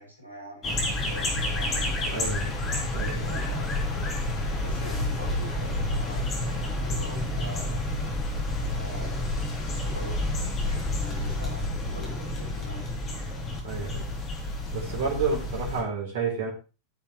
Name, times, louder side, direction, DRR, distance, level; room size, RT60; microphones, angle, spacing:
voice 1, 0.0-2.2 3.3-4.0 4.6-7.9 8.6-10.2 10.5-12.9, right 1 dB, 85° left, -3 dB, 7.5 m, -44 dB
sound 1, 0.6-15.8, left 1 dB, 25° left, 4.2 m, -29 dB
voice 2, 2.0-2.5 2.9-3.3 13.6-14.1 14.7-16.5, right 5 dB, 55° right, -2 dB, 4.6 m, -30 dB
16.0 x 7.3 x 3.3 m, 0.32 s
figure-of-eight pair, 90°, 0 cm